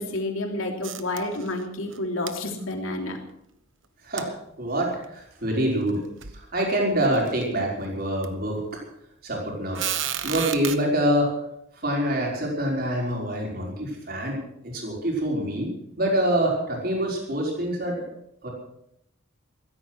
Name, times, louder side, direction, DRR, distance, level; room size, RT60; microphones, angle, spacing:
voice 1, 0.0-3.2, left 2 dB, 80° left, 3 dB, 3.1 m, -30 dB
sound 1, 0.8-1.6 1.9-2.0 2.3-2.4 4.2-4.3 5.0-5.1 5.9-6.0 6.2-6.4 7.0-7.4 8.2-8.3 9.7-10.8, right 10 dB, 65° right, 1.1 m, -31 dB
voice 2, 4.6-6.0 6.3-8.6 9.2-11.4 11.7-15.7 16.0-18.0 18.4-18.5, right 1 dB, 45° right, -1 dB, 5.3 m, -26 dB
16.0 x 13.5 x 6.3 m, 0.77 s
head